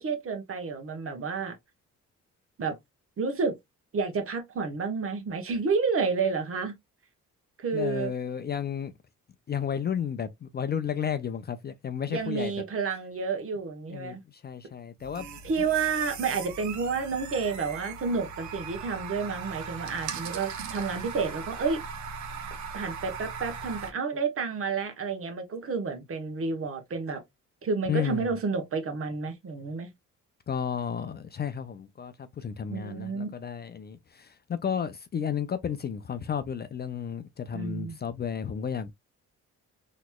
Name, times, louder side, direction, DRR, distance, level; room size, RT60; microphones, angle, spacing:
voice 1, 0.0-1.5 2.6-2.8 3.2-3.6 3.9-6.7 7.6-8.1 12.1-14.2 15.4-21.8 22.7-27.2 27.6-29.9 32.7-33.3 37.5-38.0, right 4 dB, 45° right, 1.2 m, -30 dB
voice 2, 7.7-8.9 9.5-12.5 13.9-15.3 27.9-28.3 30.5-38.9, left 8 dB, 35° left, 0.4 m, -32 dB
sound 1, 15.0-23.9, right 6 dB, 70° right, 1.0 m, -39 dB
4.0 x 3.1 x 2.2 m
cardioid pair, 90°, 30 cm